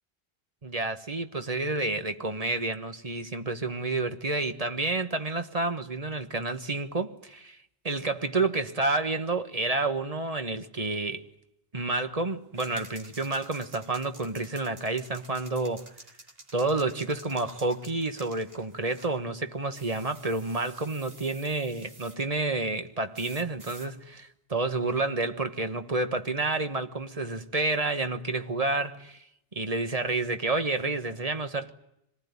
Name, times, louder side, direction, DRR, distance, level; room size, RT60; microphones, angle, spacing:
voice 1, 0.6-7.6 7.8-11.2 11.7-15.9 16.5-29.2 29.5-31.7, right 3 dB, 35° right, 1.4 m, -29 dB
sound 1, 12.5-19.2 19.7-22.3 23.1-23.9, right 1 dB, 70° right, 3.7 m, -51 dB
25.5 x 19.5 x 9.5 m
omnidirectional pair, 1.0 m